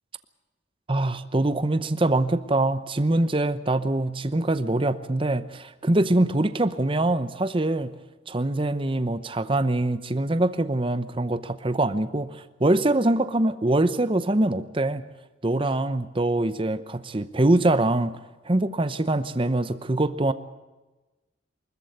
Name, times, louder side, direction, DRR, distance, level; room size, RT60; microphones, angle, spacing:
voice 1, 0.9-7.9 8.3-15.0 15.4-18.2 18.4-20.3, right 2 dB, 25° right, 12 dB, 0.8 m, -24 dB
24.0 x 14.0 x 9.4 m, 1.1 s
head